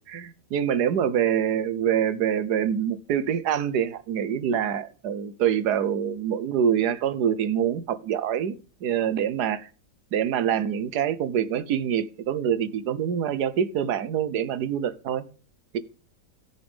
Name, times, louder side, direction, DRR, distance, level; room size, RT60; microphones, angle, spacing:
voice 1, 0.1-8.6 8.8-9.7 10.1-15.2, right 9 dB, 75° right, 1.4 m, -25 dB
17.5 x 7.0 x 3.5 m
omnidirectional pair, 1.8 m